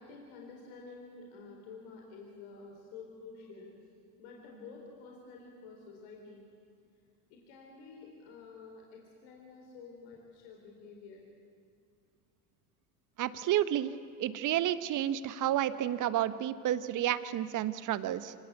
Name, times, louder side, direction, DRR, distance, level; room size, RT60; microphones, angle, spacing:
voice 1, 0.0-3.7 4.2-6.4 7.3-11.2, left 4 dB, 65° left, 0 dB, 4.1 m, -50 dB
voice 2, 13.2-13.9 14.2-18.3, right 12 dB, 40° right, 14 dB, 1.2 m, -30 dB
26.5 x 17.5 x 8.4 m, 2.4 s
hypercardioid pair, 80°, 46 cm